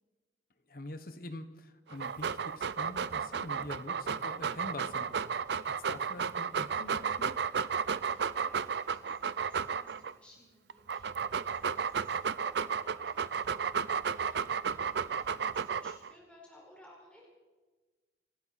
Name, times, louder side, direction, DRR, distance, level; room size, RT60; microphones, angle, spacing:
voice 1, 0.7-5.1 5.6-7.3, left 1 dB, 50° left, 10 dB, 1.1 m, -45 dB
Dog, 1.9-10.1 10.7-16.1, right 6 dB, 70° right, 0.5 m, -33 dB
voice 2, 8.0-17.3, left 1 dB, 5° left, -4 dB, 4.7 m, -60 dB
27.5 x 12.5 x 4.2 m, 1.3 s
head